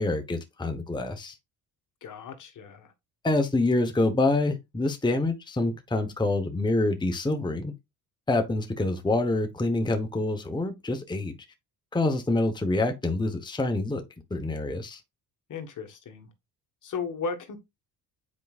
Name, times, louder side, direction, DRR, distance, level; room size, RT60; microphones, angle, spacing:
voice 1, 0.0-1.3 3.2-7.7 8.3-11.4 11.9-14.0 14.3-15.0, left 2 dB, 10° left, 1.0 m, -26 dB
voice 2, 2.0-2.9 15.5-16.3 16.8-17.6, left 5 dB, 50° left, 1.5 m, -35 dB
8.4 x 4.7 x 2.4 m
cardioid pair, 100°, 40 cm